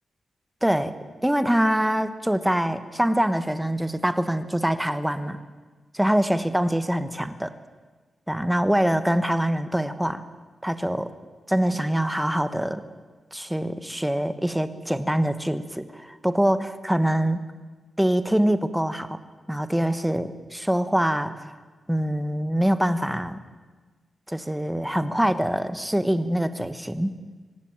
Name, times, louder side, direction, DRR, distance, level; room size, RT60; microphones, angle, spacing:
voice 1, 0.6-0.9 1.2-5.4 5.9-7.5 8.3-10.2 10.6-11.1 11.5-12.8 13.3-17.4 18.0-19.2 19.5-21.6 21.9-23.4 24.3-27.1, equal, 5° right, 11 dB, 1.2 m, -24 dB
24.0 x 18.5 x 8.9 m, 1.4 s
wide cardioid pair, 145°, 0 cm